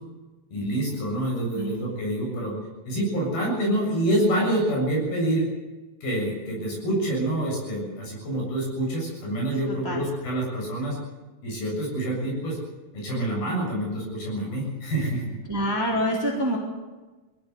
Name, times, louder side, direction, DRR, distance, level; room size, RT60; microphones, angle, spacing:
voice 1, 0.5-2.5 2.9-5.5 6.0-11.0 11.4-12.6 12.9-15.4, right 1 dB, 65° left, -3 dB, 9.1 m, -27 dB
voice 2, 15.5-16.6, equal, 5° right, -1 dB, 3.2 m, -26 dB
22.5 x 17.0 x 8.1 m, 1.2 s
omnidirectional pair, 4.5 m